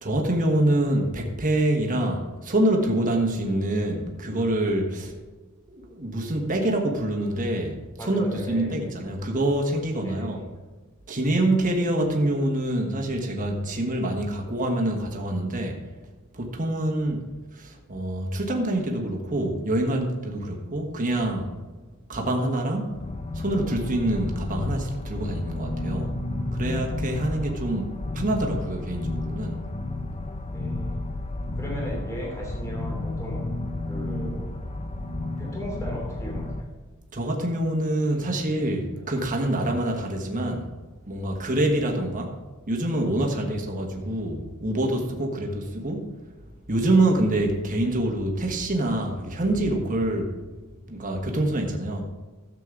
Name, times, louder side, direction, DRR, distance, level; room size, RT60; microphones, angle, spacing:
voice 1, 0.0-5.1 5.7-10.4 11.1-15.8 16.3-17.2 17.5-21.5 22.1-23.0 23.3-26.1 26.5-29.6 37.1-40.7 41.0-42.3 42.7-46.1 46.7-50.3 50.9-52.0, right 1 dB, 35° right, 2 dB, 1.4 m, -26 dB
voice 2, 8.0-9.0 10.0-10.5 20.4-20.6 27.2-27.4 30.5-31.1 31.6-33.4 33.9-34.5 35.4-36.7 38.1-38.7 38.9-39.1 43.3-43.5, equal, 15° left, -2 dB, 2.7 m, -37 dB
sound 1, 22.9-36.6, left 2 dB, 30° left, 0.6 m, -32 dB
13.0 x 7.6 x 3.8 m, 1.3 s
head